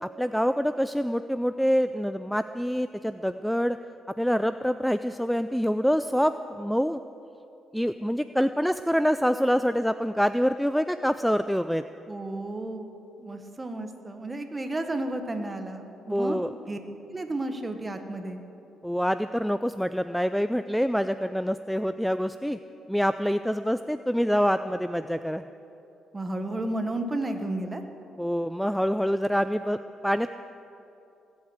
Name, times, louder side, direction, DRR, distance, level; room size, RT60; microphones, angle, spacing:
voice 1, 0.0-3.8 4.1-7.0 7.7-11.8 16.1-16.5 18.8-22.6 22.9-25.4 28.2-29.8 30.0-30.3, equal, ahead, 11 dB, 0.4 m, -26 dB
voice 2, 12.1-12.9 13.2-16.4 16.7-16.8 17.1-18.4 26.1-27.8, right 2 dB, 20° right, 6 dB, 1.5 m, -32 dB
19.5 x 8.4 x 8.0 m, 2.9 s
cardioid pair, 90°, 0 cm